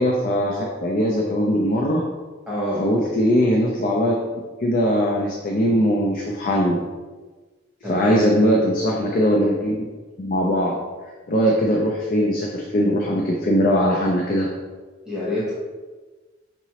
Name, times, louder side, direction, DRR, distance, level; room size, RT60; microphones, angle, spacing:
voice 1, 0.0-2.0 2.8-4.1 4.6-6.8 7.9-9.7 10.2-10.7 11.3-14.5, equal, 45° left, -1 dB, 0.5 m, -20 dB
voice 2, 2.5-2.8 7.8-8.2 15.1-15.5, left 1 dB, 5° right, -9 dB, 0.9 m, -26 dB
5.8 x 2.9 x 2.8 m, 1.3 s
head